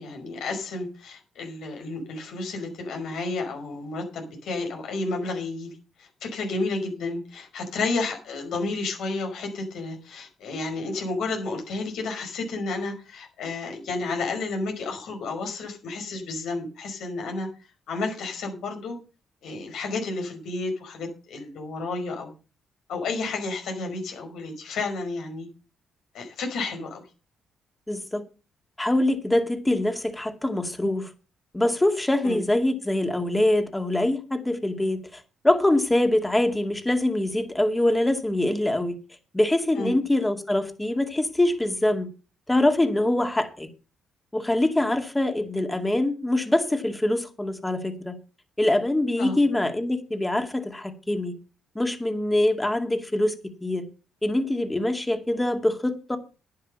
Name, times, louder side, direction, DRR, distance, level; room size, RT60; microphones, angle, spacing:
voice 1, 0.0-5.7 6.0-17.5 17.9-19.0 19.4-22.3 22.9-25.5 26.1-27.0 32.2-32.4 39.8-39.9 49.2-49.4, left 3 dB, 80° left, 5.2 m, -31 dB
voice 2, 27.9-28.2 28.8-31.1 31.5-39.0 39.3-42.1 42.5-43.7 44.3-48.2 48.6-51.4 51.8-53.9 54.2-56.2, left 1 dB, 10° left, 2.2 m, -24 dB
10.5 x 10.0 x 5.4 m
cardioid pair, 90°, 0 cm